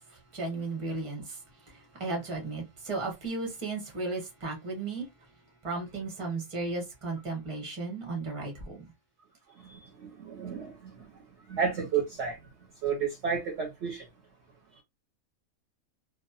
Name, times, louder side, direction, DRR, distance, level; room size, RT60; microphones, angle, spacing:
voice 1, 0.0-5.1 5.6-8.9, right 3 dB, 25° right, 0.9 m, -35 dB
voice 2, 9.6-10.9 11.5-12.4 12.8-14.0, right 6 dB, 65° right, 0.8 m, -31 dB
2.4 x 2.1 x 2.7 m
omnidirectional pair, 1.4 m